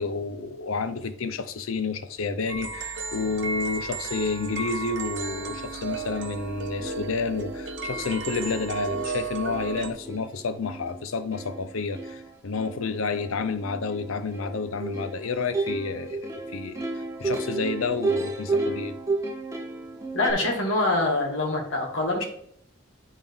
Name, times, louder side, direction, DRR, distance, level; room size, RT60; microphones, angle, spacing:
voice 1, 0.0-16.9 17.2-18.9, left 4 dB, 90° left, 11 dB, 0.6 m, -30 dB
sound 1, 2.5-9.9, right 4 dB, 60° right, 0.7 m, -34 dB
Plucked string instrument, 6.4-6.5 6.8-20.3, right 2 dB, 15° right, 0.7 m, -33 dB
voice 2, 20.1-22.2, left 2 dB, 75° left, -1 dB, 2.0 m, -24 dB
10.5 x 3.7 x 3.5 m, 0.69 s
head